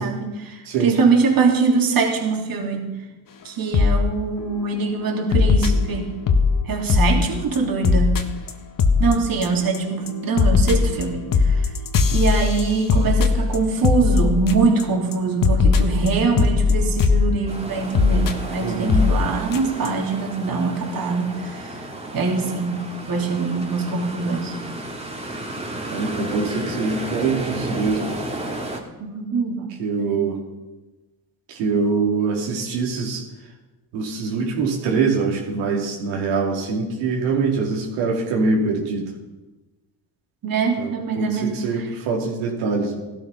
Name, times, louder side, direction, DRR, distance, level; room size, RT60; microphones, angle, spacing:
voice 1, 0.0-2.9 3.4-6.1 6.6-8.2 9.0-11.7 12.1-21.8 22.1-24.5 29.0-29.7 30.0-30.3 40.4-41.9, right 4 dB, 45° right, 1 dB, 3.4 m, -23 dB
sound 1, 3.7-4.0 4.4-4.6 5.3-6.5 6.9-7.2 7.5-7.6 7.8-8.2 8.5-8.6 8.8-9.1 9.4-9.8 10.1-14.8 15.1-15.2 15.4-17.2 17.9-18.3 18.9-19.1 19.5-19.6 19.8-19.9, left 4 dB, 45° left, 1.7 m, -18 dB
sound 2, 17.5-28.8, right 1 dB, 15° right, 2.9 m, -32 dB
voice 2, 18.6-19.1 25.9-28.1 29.8-30.4 31.6-33.2 33.9-39.1 40.8-43.0, right 4 dB, 85° right, -1 dB, 3.2 m, -23 dB
16.0 x 12.5 x 5.8 m, 1.1 s
supercardioid pair, 80°, 47 cm